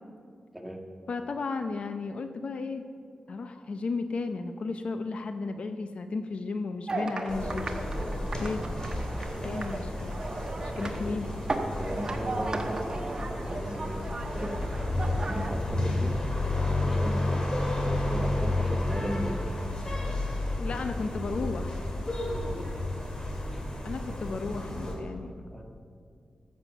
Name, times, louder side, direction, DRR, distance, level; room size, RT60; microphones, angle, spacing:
voice 1, 0.5-0.9 9.5-9.6 10.7-11.2 11.7-14.7 15.2-16.2 16.6-17.5 17.8-19.6 22.3-22.6 23.5-23.6 25.5-25.6, equal, 5° right, 1 dB, 1.5 m, -37 dB
voice 2, 1.1-2.9 3.3-7.7 8.4-8.6 9.4-10.2 10.6-11.3 20.6-21.8 23.8-25.3, left 4 dB, 60° left, 8 dB, 0.6 m, -34 dB
sound 1, 6.9-15.6, right 2 dB, 35° right, 1.1 m, -36 dB
sound 2, 7.3-24.9, left 1 dB, 35° left, 2.3 m, -31 dB
14.5 x 7.5 x 6.9 m, 2.3 s
wide cardioid pair, 115°, 2 cm